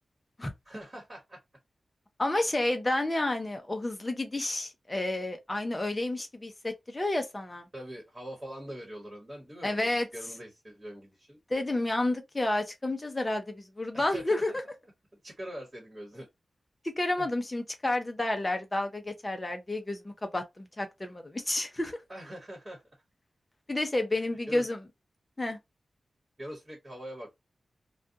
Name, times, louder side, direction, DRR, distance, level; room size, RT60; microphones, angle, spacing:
voice 1, 0.6-1.4 2.4-2.5 7.7-11.4 13.9-14.6 15.1-16.3 17.2-17.3 22.1-22.8 24.5-24.7 26.4-27.3, equal, 25° right, 1.2 m, -43 dB
voice 2, 2.2-7.7 9.6-10.1 11.5-14.5 16.8-22.0 23.7-24.8 25.4-25.6, left 2 dB, 25° left, 0.6 m, -30 dB
2.4 x 2.3 x 2.7 m
wide cardioid pair, 85°, 0 cm